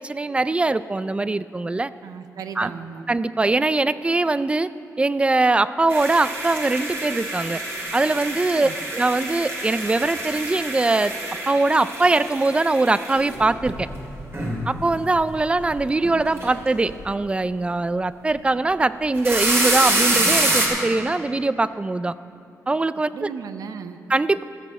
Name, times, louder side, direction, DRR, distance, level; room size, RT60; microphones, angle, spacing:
voice 1, 0.0-1.9 2.6-2.7 3.1-4.7 5.0-7.6 7.9-11.1 11.5-13.9 14.7-22.1 22.7-23.3 24.1-24.4, right 2 dB, 20° right, 15 dB, 0.3 m, -22 dB
voice 2, 2.0-3.1 8.5-8.8 23.1-24.0, right 6 dB, 80° right, 9 dB, 0.7 m, -35 dB
sound 1, 5.9-14.8 15.2-15.7 16.0-16.6 16.9-17.0 19.0-20.7, right 2 dB, 45° right, 2.4 m, -26 dB
14.5 x 6.9 x 7.3 m, 2.7 s
cardioid pair, 95°, 6 cm